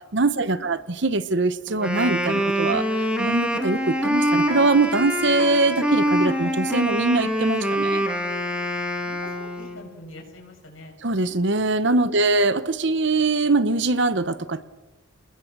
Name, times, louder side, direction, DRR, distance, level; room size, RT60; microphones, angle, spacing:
voice 1, 0.1-2.8 3.2-8.0 11.0-14.6, right 3 dB, 60° right, 13 dB, 0.9 m, -22 dB
Wind instrument woodwind instrument, 1.7-9.8, equal, 5° right, 2.4 m, -25 dB
voice 2, 9.0-11.0 12.1-12.4, left 1 dB, 80° left, 1 dB, 6.7 m, -44 dB
30.0 x 21.0 x 6.1 m, 1.1 s
head